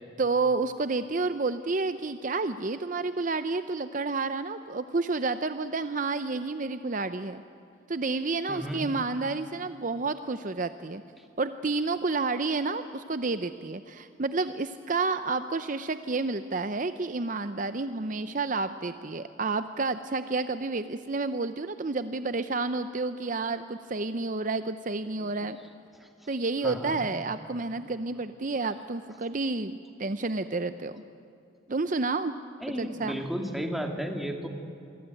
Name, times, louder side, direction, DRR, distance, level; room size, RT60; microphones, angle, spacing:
voice 1, 0.2-7.4 7.9-11.0 11.4-25.6 26.3-31.0 31.7-32.3 32.7-33.2, right 3 dB, 40° right, 11 dB, 0.6 m, -30 dB
voice 2, 8.5-8.8 11.2-11.3 25.2-25.3 25.9-26.1 26.6-27.0 32.6-34.5, equal, ahead, 3 dB, 2.3 m, -33 dB
27.5 x 23.0 x 9.1 m, 2.6 s
head